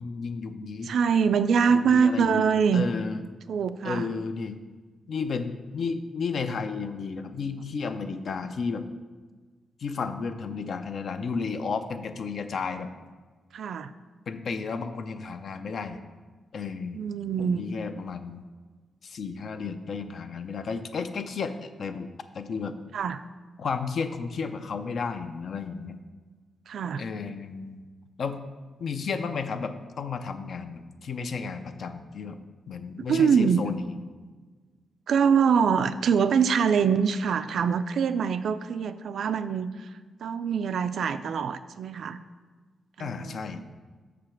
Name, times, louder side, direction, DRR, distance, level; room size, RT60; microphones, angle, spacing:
voice 1, 0.0-0.9 1.7-3.2 3.8-4.6 5.1-8.8 9.8-12.9 14.3-16.0 16.5-17.0 17.4-18.4 19.0-22.1 22.3-22.8 23.6-26.0 27.0-27.8 28.2-28.4 28.8-32.4 32.7-34.0 43.0-43.6, left 5 dB, 50° left, 9 dB, 0.5 m, -33 dB
voice 2, 0.8-2.8 3.5-4.1 13.5-13.9 16.9-17.7 22.9-23.2 26.7-27.0 33.1-33.6 35.1-39.9 40.2-42.2 43.0-43.4, right 6 dB, 65° right, 12 dB, 0.3 m, -24 dB
6.7 x 4.9 x 5.8 m, 1.4 s
wide cardioid pair, 165°, 0 cm